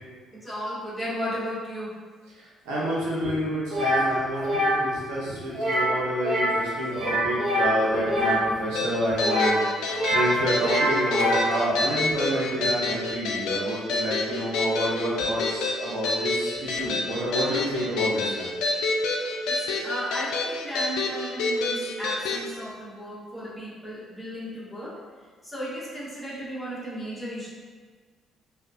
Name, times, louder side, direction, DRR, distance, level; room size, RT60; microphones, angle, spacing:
voice 1, 0.3-2.0 8.0-8.2 8.9-9.0 19.5-25.0 25.4-27.5, equal, 5° left, -9 dB, 1.2 m, -35 dB
voice 2, 2.7-9.6 10.1-18.5, equal, 80° right, -7 dB, 0.7 m, -28 dB
sound 1, 3.7-4.0 4.4-4.8 5.5-5.9 6.2-6.6 6.9-8.4 9.2-10.3 10.6-11.5, equal, 50° right, 0.7 m, -24 dB
sound 2, 8.8-22.4, left 3 dB, 75° left, 0.3 m, -28 dB
2.8 x 2.2 x 2.5 m, 1.5 s
hypercardioid pair, 55°, 0 cm